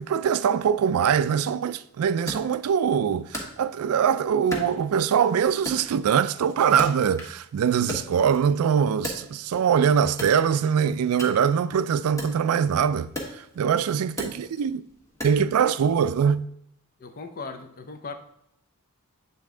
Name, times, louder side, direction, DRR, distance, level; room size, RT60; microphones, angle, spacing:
voice 1, 0.0-13.1 13.6-14.8 15.2-16.5, right 7 dB, 80° right, 0.3 m, -23 dB
Wood, 2.3-4.1 4.5-5.3 5.7-7.5 7.8-9.7 10.1-15.6, left 1 dB, 15° left, 1.3 m, -37 dB
voice 2, 17.0-18.1, left 4 dB, 45° left, 0.6 m, -38 dB
8.3 x 3.5 x 3.8 m
head